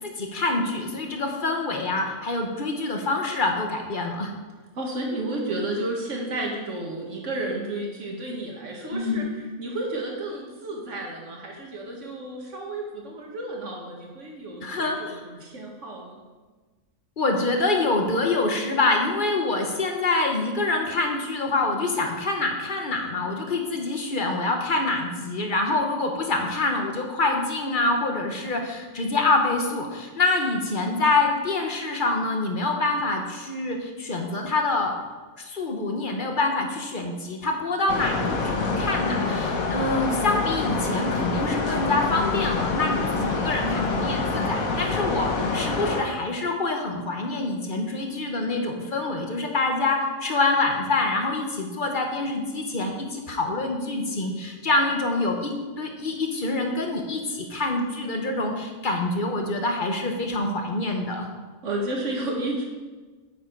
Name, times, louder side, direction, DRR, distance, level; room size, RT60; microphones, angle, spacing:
voice 1, 0.0-4.3 8.9-9.3 14.6-15.2 17.2-35.0 35.4-61.3, left 2 dB, 40° left, 3 dB, 1.2 m, -26 dB
voice 2, 4.8-16.2 61.6-62.6, right 1 dB, 60° right, -1 dB, 2.0 m, -32 dB
sound 1, 37.9-46.0, left 3 dB, 85° left, 1.5 m, -26 dB
9.0 x 7.4 x 4.6 m, 1.3 s
omnidirectional pair, 1.4 m